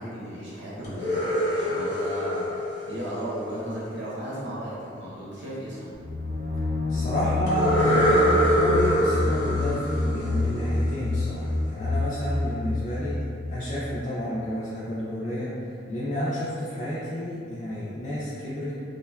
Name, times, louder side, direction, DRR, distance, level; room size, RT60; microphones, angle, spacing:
voice 1, 0.0-2.5 2.9-5.9, equal, 65° right, -8 dB, 0.7 m, -35 dB
sound 1, 0.8-3.8 7.5-11.2, equal, 55° left, 0.7 m, -25 dB
sound 2, 5.9-13.7, left 2 dB, 20° right, 0.7 m, -28 dB
voice 2, 6.9-13.2 13.5-18.8, equal, 35° left, -9 dB, 0.3 m, -30 dB
3.5 x 2.2 x 2.2 m, 2.4 s
head